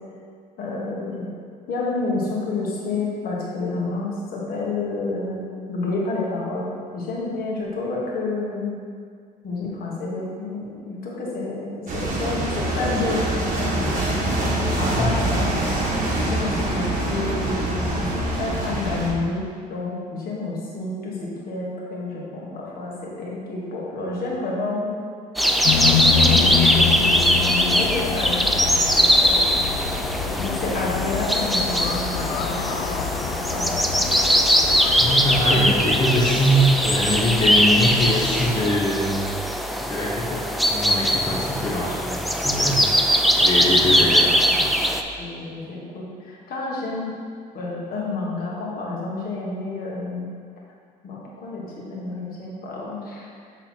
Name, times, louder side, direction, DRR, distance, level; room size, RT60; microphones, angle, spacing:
voice 1, 0.6-1.3 1.7-8.7 9.4-14.0 14.3-15.7 16.2-25.0 26.1-28.4 29.2-29.6 30.2-33.8 35.5-35.6 45.2-47.2 47.5-50.3 51.0-53.3, left 3 dB, 60° left, -4 dB, 1.6 m, -29 dB
sound 1, 11.9-19.1, right 1 dB, 50° right, 1.4 m, -24 dB
sound 2, 25.4-45.0, equal, ahead, 0.4 m, -21 dB
sound 3, 25.6-38.7, left 8 dB, 80° left, 0.5 m, -27 dB
voice 2, 35.0-39.3 39.8-42.9 43.4-44.7, equal, 25° left, -4 dB, 0.9 m, -23 dB
7.4 x 3.9 x 4.4 m, 2.1 s
cardioid pair, 110°, 17 cm